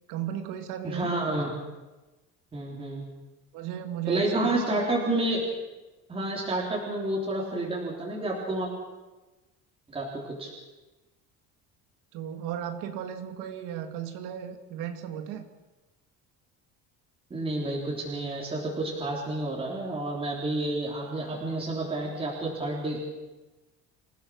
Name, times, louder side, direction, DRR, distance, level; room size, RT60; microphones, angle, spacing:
voice 1, 0.1-1.4 3.5-4.5 12.1-15.4, right 10 dB, 75° right, 7 dB, 2.1 m, -35 dB
voice 2, 0.8-1.5 2.5-3.0 4.1-5.5 6.1-8.7 9.9-10.5 17.3-23.2, right 2 dB, 15° right, -4 dB, 3.7 m, -30 dB
27.5 x 16.0 x 6.5 m, 1.1 s
cardioid pair, 165°, 31 cm